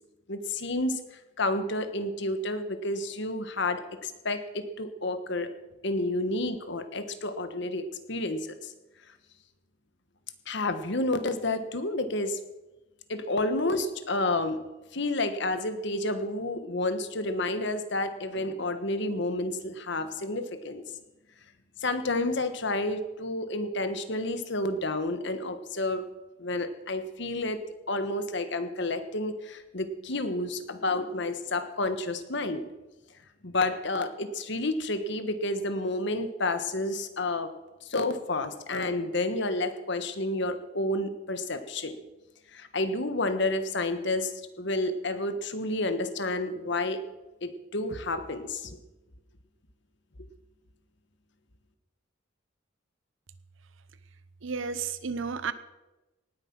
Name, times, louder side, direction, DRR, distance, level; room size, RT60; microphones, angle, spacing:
voice 1, 0.3-1.0 1.4-5.5 5.8-8.7 10.5-12.4 13.1-14.6 14.9-20.8 21.8-26.0 26.4-27.6 27.9-32.6 33.4-37.5 37.8-42.0 42.5-44.3 44.6-47.0 47.4-48.7, left 2 dB, 60° left, 10 dB, 1.3 m, -30 dB
voice 2, 54.4-55.5, right 5 dB, 75° right, 14 dB, 0.9 m, -32 dB
18.5 x 9.3 x 6.0 m, 1.1 s
head